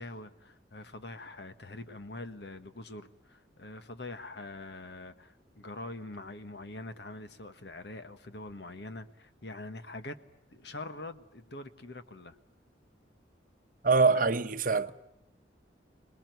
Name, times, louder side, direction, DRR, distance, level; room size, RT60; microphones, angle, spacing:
voice 1, 0.0-10.2 10.5-12.3 14.1-14.2, left 2 dB, 65° left, 1.4 m, -44 dB
voice 2, 13.8-14.9, right 4 dB, 45° right, 0.9 m, -24 dB
26.5 x 20.5 x 9.3 m
head